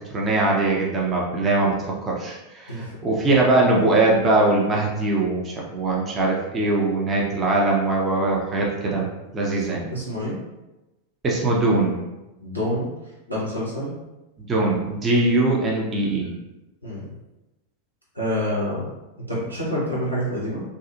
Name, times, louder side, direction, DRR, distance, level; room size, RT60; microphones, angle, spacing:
voice 1, 0.0-1.8 2.0-9.1 9.3-9.9 11.2-12.0 14.5-16.3, right 2 dB, 20° right, -3 dB, 0.5 m, -21 dB
voice 2, 9.5-10.4 12.4-12.9 13.3-13.9 16.8-17.1 18.1-18.9 19.3-20.6, equal, 85° right, -7 dB, 1.0 m, -27 dB
2.6 x 2.3 x 2.5 m, 1.0 s
figure-of-eight pair, 90°, 0 cm